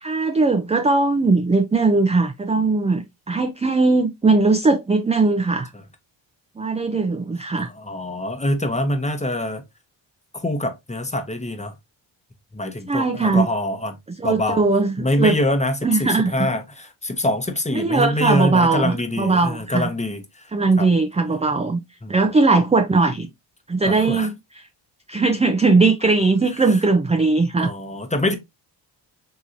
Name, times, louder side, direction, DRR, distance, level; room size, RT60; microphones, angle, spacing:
voice 1, 0.0-5.7 6.6-7.7 12.9-13.5 14.2-15.4 15.8-16.3 17.7-19.9 20.5-21.8 22.1-23.3 23.7-24.3 25.1-27.7, right 3 dB, 15° right, 0.4 m, -19 dB
voice 2, 7.6-9.6 10.3-11.7 12.5-14.0 14.2-14.6 15.0-20.5 20.8-20.9 22.0-22.3 23.8-24.3 26.5-26.8 27.6-28.3, left 1 dB, 15° left, 0.9 m, -25 dB
3.6 x 2.9 x 2.6 m
supercardioid pair, 55°, 48 cm